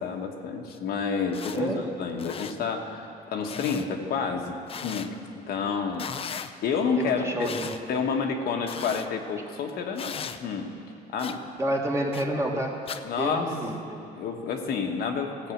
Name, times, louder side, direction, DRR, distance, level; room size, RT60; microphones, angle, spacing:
voice 1, 0.0-6.1 6.4-7.6 7.9-10.7 11.1-11.4 13.0-13.6 14.1-15.5, left 5 dB, 65° left, 3 dB, 1.2 m, -29 dB
sound 1, 0.7-0.8 1.3-1.6 2.1-2.5 3.4-3.9 4.7-5.1 5.9-6.5 7.4-7.8 8.6-9.1 9.9-10.4 11.2-11.4 12.1-12.2 12.9-13.0, left 7 dB, 35° left, 0.5 m, -37 dB
voice 2, 1.5-1.9 7.0-7.8 11.6-12.8 13.2-14.0, right 1 dB, 15° right, 0 dB, 1.5 m, -29 dB
15.0 x 5.5 x 8.3 m, 2.5 s
cardioid pair, 110°, 17 cm